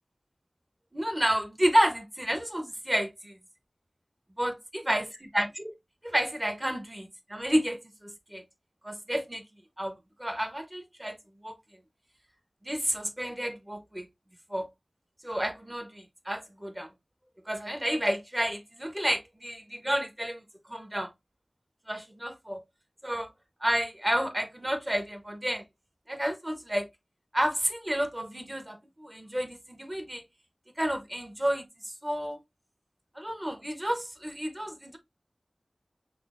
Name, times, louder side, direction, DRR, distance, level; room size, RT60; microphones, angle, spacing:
voice 1, 0.9-3.3 4.4-4.5 4.9-5.0 5.3-5.7 6.0-8.4 8.8-9.4 9.8-11.2 11.4-11.6 12.6-14.1 14.5-14.7 15.2-16.9 17.5-20.4 20.7-21.1 21.9-22.6 23.0-23.3 23.6-25.6 26.1-26.9 27.3-30.2 30.8-31.6 32.0-32.4 33.2-35.0, equal, 20° right, 0.8 m, -30 dB
5.6 x 2.0 x 2.4 m
wide cardioid pair, 60°, 0 cm